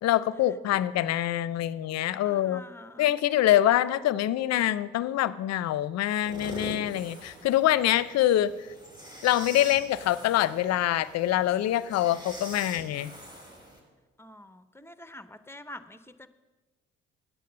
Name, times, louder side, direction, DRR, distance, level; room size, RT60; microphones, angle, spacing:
voice 1, 0.0-2.6 3.0-8.5 9.2-13.1, left 13 dB, 60° left, 17 dB, 0.5 m, -25 dB
voice 2, 2.2-3.1 14.2-16.3, left 1 dB, 10° left, 12 dB, 0.7 m, -46 dB
sound 1, 6.2-13.8, right 1 dB, 15° right, 3.3 m, -44 dB
8.7 x 8.4 x 6.7 m, 1.2 s
hypercardioid pair, 55°, 29 cm